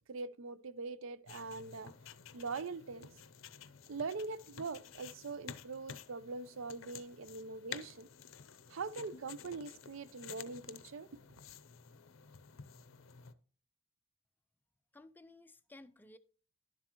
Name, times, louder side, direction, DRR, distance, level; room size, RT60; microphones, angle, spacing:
voice 1, 0.1-1.9 2.3-3.1 3.9-8.1 8.7-11.1, right 4 dB, 70° right, 0.5 m, -42 dB
sound 1, 1.3-13.3, left 7 dB, 70° left, 0.6 m, -52 dB
voice 2, 14.9-16.2, left 2 dB, 10° left, 0.3 m, -56 dB
11.0 x 7.5 x 3.0 m
head